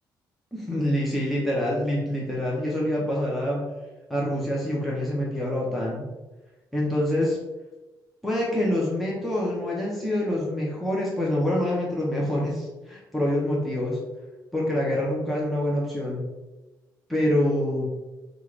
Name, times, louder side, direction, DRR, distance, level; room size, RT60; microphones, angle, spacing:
voice 1, 0.5-3.7 4.1-6.1 6.7-7.4 8.2-14.0 14.5-16.3 17.1-17.9, left 1 dB, ahead, -5 dB, 0.9 m, -26 dB
5.5 x 2.5 x 3.3 m, 1.1 s
cardioid pair, 105°, 8 cm